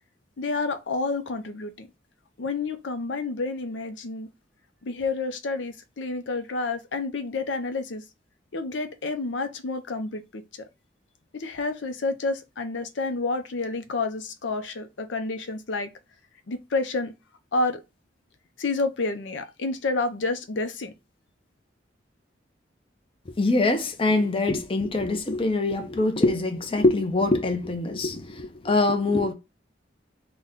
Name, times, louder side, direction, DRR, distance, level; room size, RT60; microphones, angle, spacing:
voice 1, 0.4-1.9 2.4-4.3 4.8-8.0 8.5-10.7 11.3-15.9 16.5-17.1 17.5-17.8 18.6-20.9, left 3 dB, 80° left, 0.6 m, -29 dB
voice 2, 23.4-29.3, left 2 dB, 30° left, 0.5 m, -24 dB
3.9 x 2.2 x 3.6 m
head